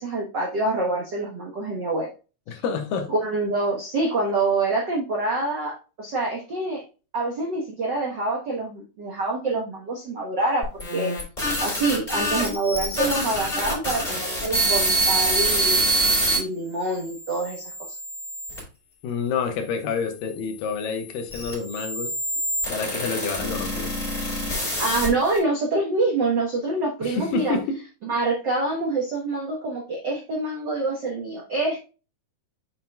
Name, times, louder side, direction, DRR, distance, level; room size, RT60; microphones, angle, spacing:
voice 1, 0.0-2.1 3.1-6.8 7.1-11.1 11.6-15.8 16.3-17.7 24.8-27.5 28.0-31.8, right 2 dB, 75° right, -1 dB, 1.0 m, -26 dB
voice 2, 2.5-3.1 19.0-22.1 22.7-23.9 27.0-27.8, left 5 dB, 80° left, 5 dB, 2.8 m, -28 dB
sound 1, 10.6-16.4 17.0-18.6 19.4-25.4, right 1 dB, 15° left, 3.7 m, -26 dB
7.1 x 6.1 x 2.2 m, 0.33 s
omnidirectional pair, 3.9 m